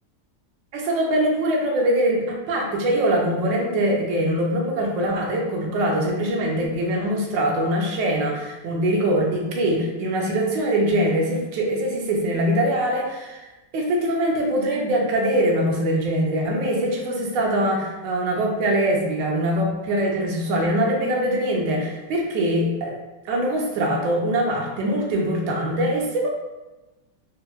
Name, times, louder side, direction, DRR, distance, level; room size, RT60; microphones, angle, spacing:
voice 1, 0.7-23.0 23.3-26.3, right 1 dB, 80° right, 0 dB, 1.3 m, -23 dB
4.3 x 2.0 x 2.3 m, 1.1 s
omnidirectional pair, 2.0 m